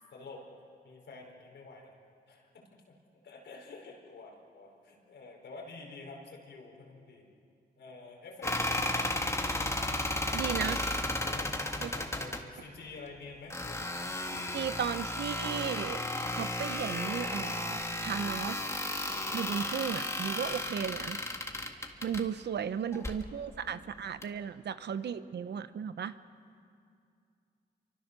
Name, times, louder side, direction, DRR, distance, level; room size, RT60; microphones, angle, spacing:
voice 1, 0.1-0.5 0.8-1.9 2.3-3.0 3.2-7.3 7.8-9.1 11.2-13.9 22.6-23.0 23.3-23.9 24.4-24.9 25.1-25.3, left 3 dB, 85° left, 0 dB, 4.9 m, -49 dB
sound 1, 8.4-12.4 13.5-22.2 22.9-23.2 24.2-24.3, left 1 dB, 15° left, 1.8 m, -34 dB
voice 2, 10.3-10.8 11.8-11.9 14.3-16.0 16.3-18.6 19.3-21.2 22.0-26.1, right 7 dB, 75° right, 13 dB, 0.9 m, -35 dB
28.5 x 24.5 x 6.9 m, 2.4 s
cardioid pair, 95°, 18 cm